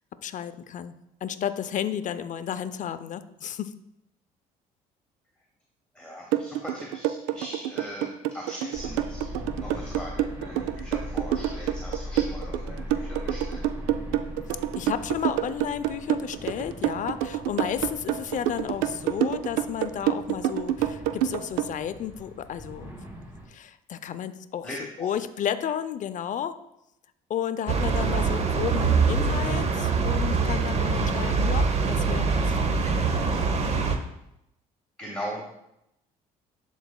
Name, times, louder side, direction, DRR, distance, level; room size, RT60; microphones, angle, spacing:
voice 1, 0.2-0.9 1.2-3.7 14.7-23.1 23.5-24.7 25.0-26.6 27.3-33.9, left 9 dB, 50° left, 12 dB, 0.5 m, -33 dB
voice 2, 5.9-13.7 24.6-25.1 35.0-35.5, equal, 5° left, -2 dB, 1.2 m, -40 dB
sound 1, 6.3-21.7, right 12 dB, 90° right, 0.4 m, -27 dB
sound 2, 8.7-23.5, left 1 dB, 15° right, 2.3 m, -40 dB
sound 3, 27.7-34.0, right 4 dB, 40° right, 0.9 m, -24 dB
11.5 x 4.0 x 2.3 m, 0.83 s
supercardioid pair, 70°, 17 cm